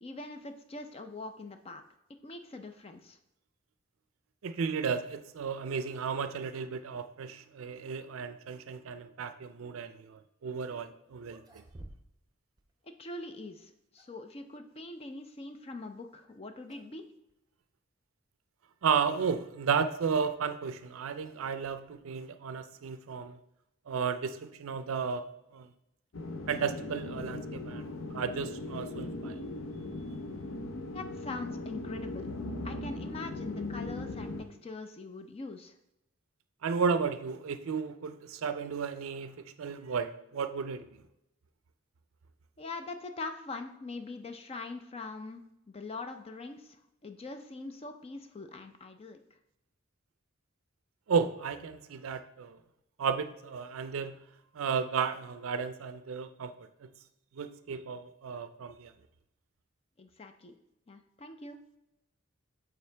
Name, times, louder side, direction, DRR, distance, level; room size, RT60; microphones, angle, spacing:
voice 1, 0.0-1.8 2.2-3.2 12.8-17.1 30.9-32.3 32.6-34.3 34.6-35.7 42.6-49.2 60.0-60.6 60.9-61.6, left 3 dB, 30° left, 7 dB, 0.4 m, -43 dB
voice 2, 4.4-11.4 18.8-23.4 23.9-25.2 25.5-25.7 26.5-29.4 36.6-40.9 51.1-52.6 53.0-54.2 54.5-56.9 57.3-58.9, right 6 dB, 85° right, 11 dB, 0.4 m, -33 dB
sound 1, 11.2-12.3 12.6-12.7 13.6-14.3 16.1-16.3 16.7-17.0 17.3-17.4 18.2-18.3 20.0-22.2, right 1 dB, 20° right, 0.7 m, -55 dB
sound 2, 26.1-34.4, left 2 dB, 75° left, 0.6 m, -39 dB
8.4 x 3.8 x 3.3 m, 0.86 s
head